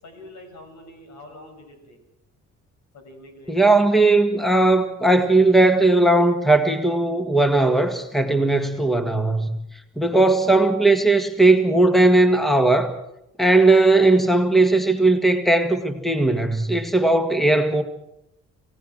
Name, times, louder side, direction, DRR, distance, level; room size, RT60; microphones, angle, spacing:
voice 1, 0.0-2.0 2.9-3.7 10.1-10.7, left 1 dB, 65° left, 5 dB, 6.9 m, -45 dB
voice 2, 3.5-9.6 10.0-12.9 13.4-17.8, right 2 dB, ahead, 7 dB, 2.0 m, -18 dB
26.5 x 17.5 x 6.2 m, 0.82 s
cardioid pair, 90°, 30 cm